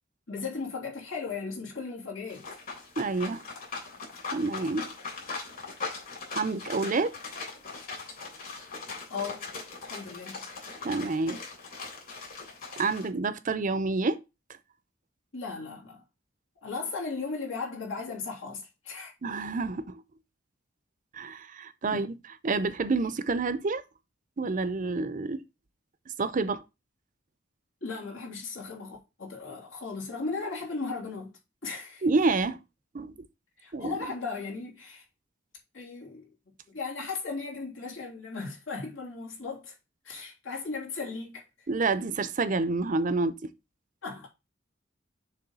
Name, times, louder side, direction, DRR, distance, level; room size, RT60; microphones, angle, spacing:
voice 1, 0.3-2.5 9.1-9.5 9.9-10.4 15.3-16.0 16.6-19.1 21.9-22.1 27.8-31.3 31.6-32.1 33.6-35.0 35.7-36.3 36.7-39.7 40.0-41.7 44.0-44.3, left 4 dB, 80° left, 3.0 m, -36 dB
sound 1, 2.3-13.1, left 4 dB, 50° left, 3.2 m, -40 dB
voice 2, 3.0-3.4 4.3-4.9 6.3-7.2 10.8-11.4 12.8-14.2 19.2-20.0 21.1-22.2 22.4-23.8 24.4-25.4 26.2-26.6 32.0-32.6 32.9-33.1 33.7-34.0 41.7-43.5, right 3 dB, 40° right, 0.5 m, -28 dB
6.8 x 3.2 x 5.3 m
head